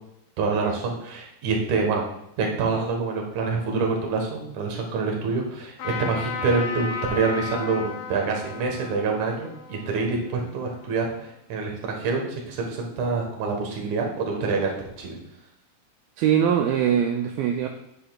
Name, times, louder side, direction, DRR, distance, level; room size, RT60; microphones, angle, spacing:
voice 1, 0.4-2.1 2.4-14.7 15.0-15.2, right 4 dB, 60° right, 0 dB, 2.4 m, -26 dB
Trumpet, 5.8-11.3, left 5 dB, 70° left, 3.5 m, -35 dB
voice 2, 16.2-17.7, right 9 dB, 80° right, 3 dB, 2.2 m, -22 dB
9.8 x 8.1 x 2.4 m, 0.80 s
omnidirectional pair, 4.5 m